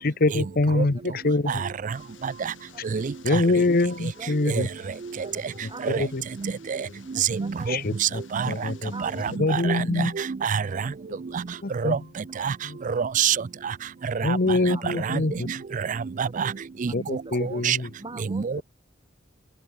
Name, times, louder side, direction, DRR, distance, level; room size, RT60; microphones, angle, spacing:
voice 1, 0.0-1.6 3.2-4.7 5.6-6.2 7.7-8.9 9.3-10.2 11.1-11.2 11.6-12.0 12.6-12.8 14.2-15.6 16.9-17.9, left 2 dB, 50° left, 1.0 m, -25 dB
sound 1, 1.9-9.4, left 6 dB, 75° left, 6.4 m, -53 dB
voice 2, 2.9-3.4 4.5-4.6 5.8-6.0 6.7-6.8 7.3-8.5 9.0-9.1 9.5-10.1 10.4-10.6 11.8-12.0 12.4-12.5 13.0-13.4 14.3-14.4 15.1-15.2 16.2-16.5 16.8-16.9 17.6-17.8 18.3-18.5, right 7 dB, 40° right, 0.4 m, -25 dB
voice 3, 4.2-4.6 5.1-5.4 5.7-6.1 7.1-7.7 8.9-9.3 14.1-14.2 14.7-15.0 16.9-17.0 17.3-17.7 18.0-18.6, right 2 dB, 25° right, 1.9 m, -42 dB
open air
head